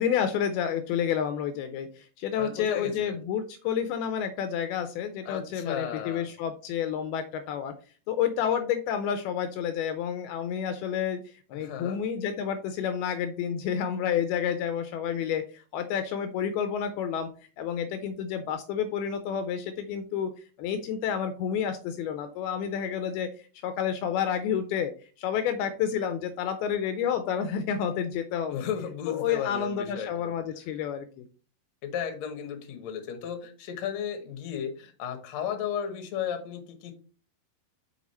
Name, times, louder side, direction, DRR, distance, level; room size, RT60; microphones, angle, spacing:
voice 1, 0.0-7.7 8.1-11.2 11.5-17.3 17.6-20.3 20.6-23.3 23.6-24.9 25.2-28.6 29.1-31.3, left 8 dB, 80° left, 9 dB, 2.4 m, -29 dB
voice 2, 2.4-3.2 5.3-6.3 11.5-12.0 28.5-30.3 31.8-36.9, left 8 dB, 65° left, 5 dB, 1.8 m, -34 dB
6.1 x 5.5 x 4.1 m, 0.40 s
omnidirectional pair, 4.7 m